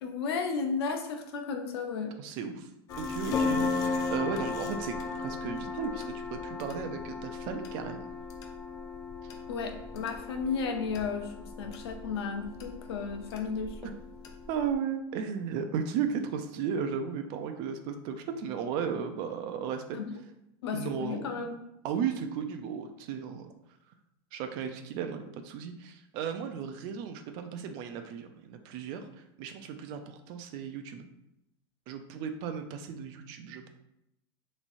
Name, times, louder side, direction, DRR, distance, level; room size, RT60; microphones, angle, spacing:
voice 1, 0.0-2.1 9.5-13.9 19.9-20.1 20.6-21.6, left 5 dB, 90° left, 4 dB, 0.8 m, -34 dB
voice 2, 2.2-2.7 3.0-8.1 13.8-13.9 14.5-20.0 20.7-21.4 21.8-23.5 24.3-31.1 31.9-33.7, right 7 dB, 35° right, 7 dB, 0.4 m, -35 dB
sound 1, 2.9-14.7, left 4 dB, 25° left, 0.4 m, -36 dB
3.5 x 3.0 x 4.1 m, 0.83 s
supercardioid pair, 175°, 13 cm